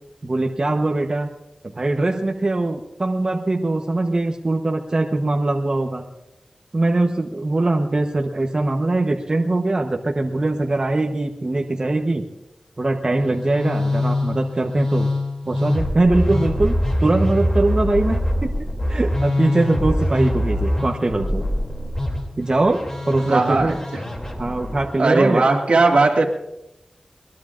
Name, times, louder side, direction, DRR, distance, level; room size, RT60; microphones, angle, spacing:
voice 1, 0.2-1.3 1.6-6.0 6.7-12.3 12.8-15.1 15.5-16.7 17.0-18.5 18.9-21.4 22.4-23.7 24.4-25.4, right 2 dB, 40° right, 2 dB, 1.0 m, -21 dB
Musical instrument, 13.1-24.9, left 1 dB, 25° left, 2.9 m, -24 dB
voice 2, 23.3-24.0 25.0-26.3, right 3 dB, 80° right, 2 dB, 2.1 m, -18 dB
21.5 x 21.5 x 2.5 m, 0.89 s
wide cardioid pair, 90°, 2 cm